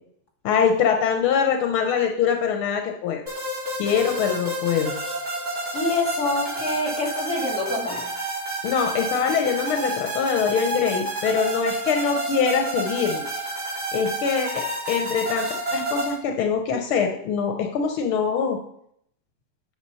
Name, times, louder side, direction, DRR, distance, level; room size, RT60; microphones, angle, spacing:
voice 1, 0.4-3.2 3.8-4.9 8.6-13.2 13.9-18.6, left 6 dB, 85° left, 4 dB, 1.8 m, -23 dB
sound 1, 3.3-16.1, right 2 dB, 30° right, 4.9 m, -29 dB
voice 2, 5.7-8.0, left 2 dB, 50° left, 0 dB, 3.0 m, -26 dB
9.4 x 7.0 x 5.5 m, 0.71 s
omnidirectional pair, 2.3 m